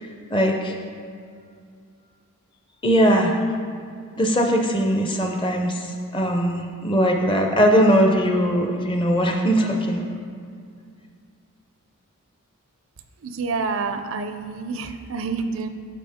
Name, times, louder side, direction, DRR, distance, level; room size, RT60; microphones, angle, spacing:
voice 1, 0.3-0.8 2.8-3.4 4.2-5.8 6.1-10.0, equal, 20° left, 3 dB, 0.6 m, -20 dB
voice 2, 13.2-15.7, right 4 dB, 60° right, 9 dB, 0.4 m, -28 dB
12.0 x 4.6 x 3.6 m, 2.3 s
head